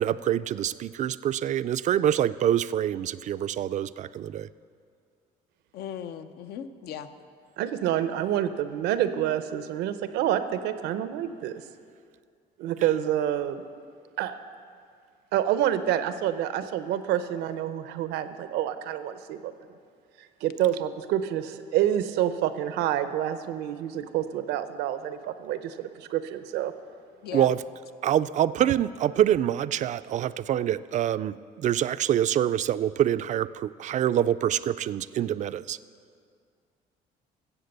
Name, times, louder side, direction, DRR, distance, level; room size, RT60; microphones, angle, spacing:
voice 1, 0.0-4.5 12.8-12.9 27.3-27.6 28.0-35.8, right 11 dB, 45° right, 14 dB, 0.4 m, -26 dB
voice 2, 5.7-7.1 27.2-27.5, left 9 dB, 70° left, 10 dB, 0.7 m, -37 dB
voice 3, 7.6-11.6 12.6-13.6 14.2-14.3 15.3-19.5 20.2-26.7, right 11 dB, 90° right, 11 dB, 0.7 m, -28 dB
15.0 x 7.8 x 6.6 m, 2.2 s
cardioid pair, 110°, 17 cm